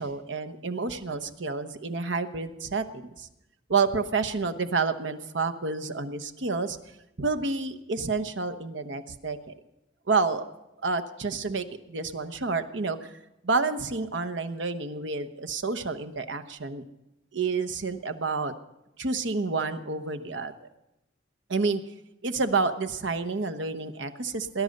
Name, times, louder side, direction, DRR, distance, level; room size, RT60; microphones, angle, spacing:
voice 1, 0.0-3.3 3.7-6.8 7.2-9.5 10.1-10.4 10.8-13.1 13.4-16.8 17.3-18.5 19.0-20.7 21.5-21.8 22.2-24.6, right 4 dB, 70° right, 10 dB, 1.0 m, -29 dB
19.0 x 11.0 x 6.6 m, 0.92 s
head